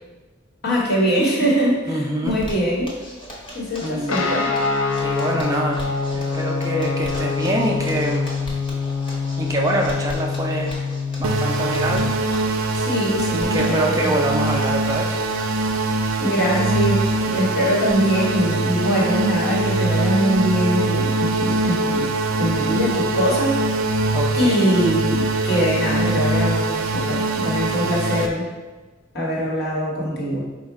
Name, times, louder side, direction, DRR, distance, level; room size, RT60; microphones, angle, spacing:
voice 1, 0.6-3.0 3.5-4.5 12.7-14.1 16.2-28.5 29.1-30.4, equal, 55° left, -3 dB, 1.0 m, -23 dB
voice 2, 1.9-2.4 3.8-4.4 5.0-5.8 6.1-8.3 9.4-10.7 11.2-12.1 13.4-15.2 24.1-24.6, right 1 dB, 15° right, -1 dB, 0.3 m, -25 dB
Zipper (clothing), 2.3-20.5 20.8-20.9 21.2-21.3 21.6-22.0, equal, 25° left, 0.9 m, -40 dB
Guitar, 4.1-12.1, left 4 dB, 70° left, 0.5 m, -25 dB
sound 1, 11.2-28.3, right 2 dB, 85° right, 0.4 m, -22 dB
4.5 x 2.1 x 4.6 m, 1.3 s
head